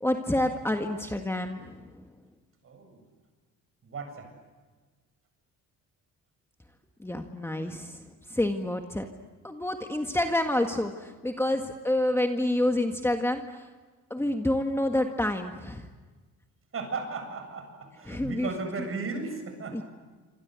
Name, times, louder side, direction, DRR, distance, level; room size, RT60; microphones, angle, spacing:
voice 1, 0.0-1.8 7.0-8.0 8.3-9.1 9.4-13.6 14.1-15.9 18.1-18.5 19.7-19.8, left 1 dB, 10° left, 4 dB, 1.7 m, -28 dB
voice 2, 2.6-3.0 3.8-4.3 11.5-11.7 14.2-14.3 16.7-19.8, right 4 dB, 45° right, 6 dB, 7.8 m, -36 dB
27.5 x 26.5 x 8.3 m, 1.4 s
cardioid pair, 120°, 32 cm